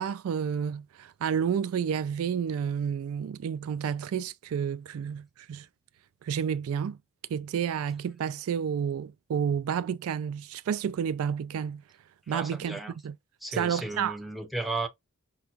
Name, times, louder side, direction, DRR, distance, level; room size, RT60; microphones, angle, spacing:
voice 1, 0.0-5.7 6.2-7.0 7.3-11.8 12.3-13.1 13.5-14.2, right 7 dB, 80° right, 0.3 m, -30 dB
voice 2, 12.3-13.0 13.4-14.9, right 2 dB, ahead, 0.6 m, -34 dB
5.7 x 2.2 x 2.5 m
head